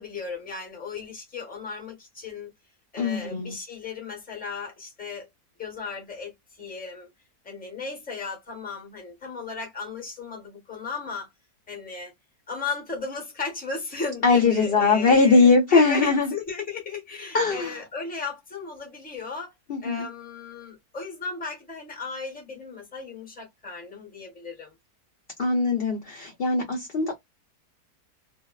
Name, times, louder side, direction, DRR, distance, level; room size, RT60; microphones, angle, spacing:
voice 1, 0.0-2.5 2.9-5.3 5.6-6.3 6.6-7.1 7.4-11.3 11.7-12.1 12.5-19.5 19.8-24.7, left 4 dB, 5° left, 0.8 m, -35 dB
voice 2, 3.0-3.6 14.2-16.3 17.3-17.8 19.7-20.1 25.4-27.2, left 4 dB, 55° left, 0.7 m, -21 dB
2.6 x 2.0 x 2.3 m
omnidirectional pair, 1.7 m